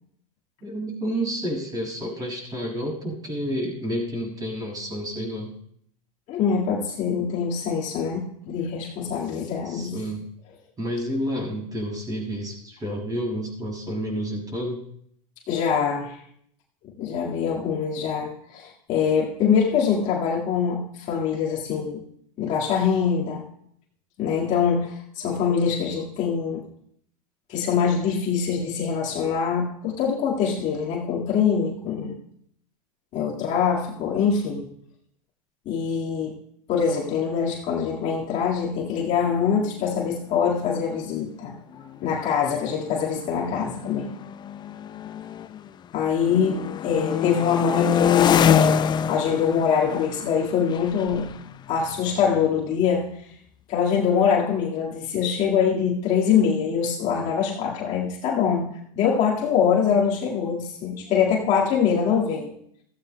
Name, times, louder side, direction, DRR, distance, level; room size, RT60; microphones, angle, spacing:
voice 1, 0.6-5.5 9.6-10.2 10.8-14.8, equal, 20° right, -1 dB, 6.1 m, -30 dB
voice 2, 6.3-9.9 15.5-16.2 16.8-22.0 22.4-23.4 24.2-26.7 27.5-32.2 33.1-34.7 35.7-36.4 36.7-41.5 42.0-44.1 45.9-48.8 49.1-51.3 51.7-53.1 53.7-58.7 58.9-62.6, left 7 dB, 40° left, -3 dB, 1.9 m, -24 dB
sound 1, 40.3-40.4 40.6-41.0 41.7-45.7 46.0-52.7, left 8 dB, 25° left, 0.5 m, -26 dB
22.0 x 15.0 x 2.2 m, 0.67 s
hypercardioid pair, 105°, 18 cm